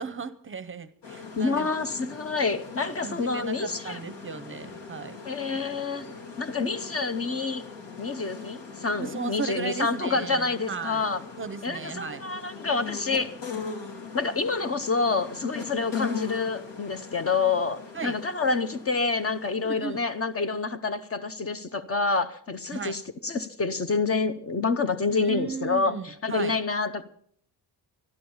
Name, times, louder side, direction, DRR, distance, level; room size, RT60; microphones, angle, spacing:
voice 1, 0.0-1.7 3.0-5.2 9.0-11.1 11.4-12.2 17.9-18.2 19.6-20.0 22.7-23.0 25.1-26.5, right 5 dB, 30° right, 12 dB, 0.7 m, -35 dB
sound 1, 1.0-20.6, left 5 dB, 75° left, 2.7 m, -40 dB
voice 2, 1.4-4.0 5.2-6.1 6.4-7.6 8.0-11.2 11.6-13.3 14.1-27.0, left 4 dB, 35° left, 11 dB, 0.8 m, -28 dB
12.0 x 12.0 x 7.1 m, 0.64 s
wide cardioid pair, 160°, 42 cm